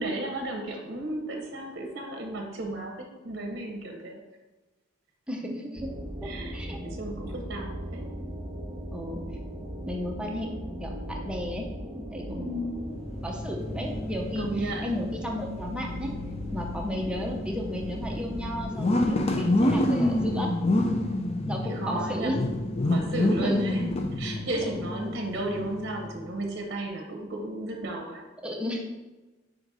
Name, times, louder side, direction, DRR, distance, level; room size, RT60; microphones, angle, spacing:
voice 1, 0.0-2.9 3.2-4.2 6.2-6.6 6.8-8.1 12.3-13.0 14.4-14.9 21.6-22.4 22.8-28.2, right 2 dB, 55° right, 2 dB, 0.8 m, -34 dB
voice 2, 5.3-5.9 6.2-6.8 8.9-9.2 9.9-10.5 10.8-11.7 11.9-12.8 13.2-16.1 16.5-20.6 21.5-22.3 23.4-23.6 24.6-24.7 28.4-28.8, left 1 dB, 5° right, 0 dB, 0.7 m, -34 dB
sound 1, 5.7-18.7, equal, 30° right, 1.3 m, -38 dB
sound 2, 12.9-26.2, left 1 dB, 30° left, 0.5 m, -29 dB
4.9 x 4.1 x 4.7 m, 1.1 s
head